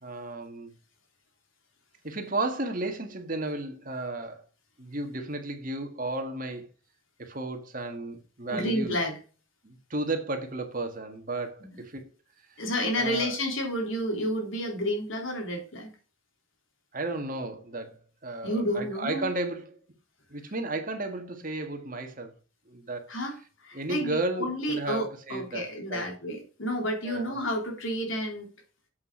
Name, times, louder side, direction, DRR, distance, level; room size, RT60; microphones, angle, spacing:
voice 1, 0.0-0.7 2.0-4.4 4.8-6.7 7.2-8.9 9.6-12.1 13.0-13.4 16.9-19.8 20.3-22.3 22.7-23.1 23.7-26.1 27.0-27.5, right 2 dB, 40° right, 1.9 m, -33 dB
voice 2, 8.5-9.2 11.6-11.7 12.6-15.9 18.4-19.3 23.1-28.5, equal, 70° left, 3.6 m, -30 dB
8.0 x 7.3 x 6.3 m
head